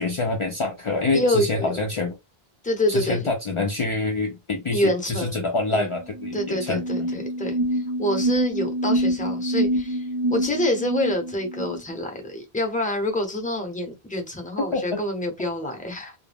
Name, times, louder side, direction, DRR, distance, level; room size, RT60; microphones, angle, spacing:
voice 1, 0.0-2.2 2.9-7.2 14.6-15.0, left 3 dB, 55° left, 0.3 m, -26 dB
voice 2, 1.1-1.8 2.6-3.2 4.7-5.4 5.7-5.9 6.3-7.6 8.0-10.0 10.3-16.1, left 1 dB, 10° left, 0.6 m, -26 dB
sound 1, 6.1-11.8, equal, 45° right, 0.9 m, -26 dB
2.2 x 2.1 x 3.3 m
omnidirectional pair, 1.1 m